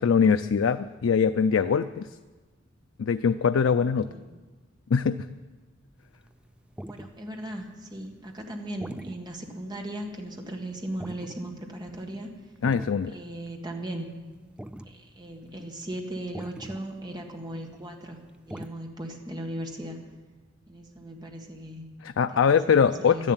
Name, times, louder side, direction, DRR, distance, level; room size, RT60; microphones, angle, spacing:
voice 1, 0.0-2.1 3.0-4.1 4.9-5.2 12.6-13.1 22.0-23.3, left 6 dB, 80° left, 10 dB, 0.4 m, -22 dB
sound 1, 6.0-10.2 10.4-10.5 10.9-11.6 11.9-12.2 12.6-17.8 18.1-18.7, right 1 dB, 5° right, 0.4 m, -43 dB
voice 2, 6.9-12.3 13.1-14.2 14.8-18.2 18.5-20.0 20.7-21.8 22.4-23.3, right 1 dB, 20° right, 2 dB, 1.7 m, -37 dB
12.0 x 11.0 x 8.9 m, 1.3 s
head